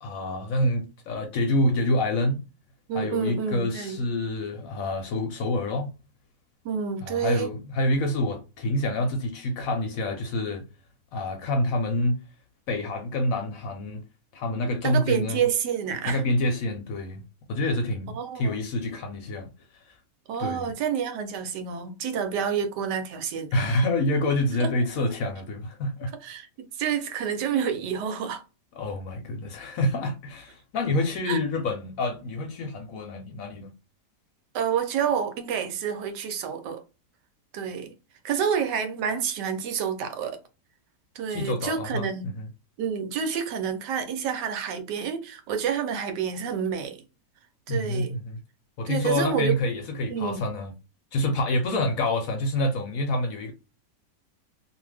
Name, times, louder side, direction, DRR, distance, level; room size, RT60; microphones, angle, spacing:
voice 1, 0.0-2.4 2.9-5.9 7.0-10.6 11.1-12.2 12.7-14.0 14.3-15.4 16.1-17.2 17.5-19.5 20.4-20.7 23.5-26.1 28.8-33.7 41.3-42.1 42.3-42.5 47.7-48.4 48.8-50.7 51.1-53.5, left 1 dB, 65° left, 0.9 m, -27 dB
voice 2, 2.9-4.0 6.6-7.5 14.8-16.2 18.1-18.6 20.3-23.8 24.6-24.7 26.2-26.5 26.7-28.4 31.2-31.4 34.5-36.8 37.5-37.9 38.2-40.4 41.1-42.3 42.8-47.0 47.7-48.1 48.9-49.6 50.1-50.4, right 7 dB, 80° right, 1.3 m, -28 dB
2.7 x 2.4 x 3.3 m
omnidirectional pair, 1.8 m